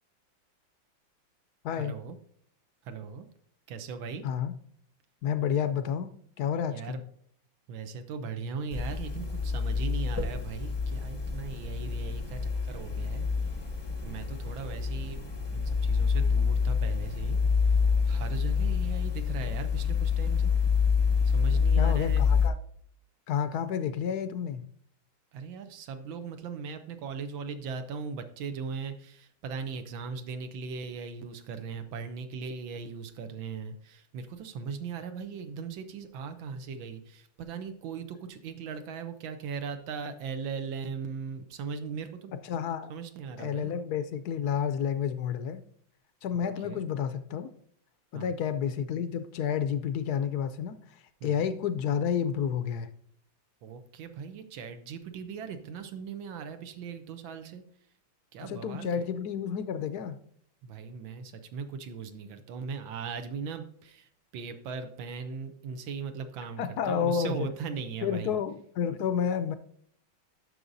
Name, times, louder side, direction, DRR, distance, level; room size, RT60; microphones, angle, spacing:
voice 1, 1.8-2.2 2.8-3.3 3.7-4.3 6.7-7.0 7.7-13.6 14.0-15.2 15.5-17.4 17.7-17.8 18.1-20.5 21.3-22.2 25.3-42.3 42.9-43.8 46.3-46.8 48.1-48.3 51.2-51.5 53.6-57.6 58.3-59.0 60.6-68.3, right 5 dB, 85° right, 8 dB, 1.5 m, -39 dB
voice 2, 5.2-6.1 6.4-7.0 21.8-22.6 23.3-24.7 42.4-42.9 43.4-45.6 46.2-47.5 48.1-50.8 51.2-52.9 58.5-60.2 66.6-67.5 68.0-69.5, left 8 dB, 70° left, 11 dB, 0.9 m, -30 dB
sound 1, 8.7-22.5, left 5 dB, 25° left, 0.5 m, -27 dB
11.0 x 6.3 x 2.6 m, 0.63 s
omnidirectional pair, 2.1 m